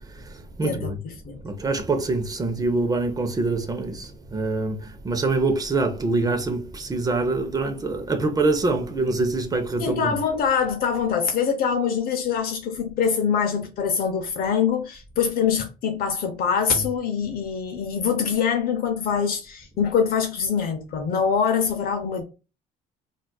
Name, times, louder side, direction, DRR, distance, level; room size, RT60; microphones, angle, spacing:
voice 1, 0.1-1.0 1.4-10.2 16.7-16.8, right 3 dB, 20° right, 0.6 m, -25 dB
voice 2, 0.6-1.4 9.8-22.2, left 6 dB, 60° left, 0.6 m, -24 dB
4.0 x 2.4 x 2.3 m
cardioid pair, 110°, 17 cm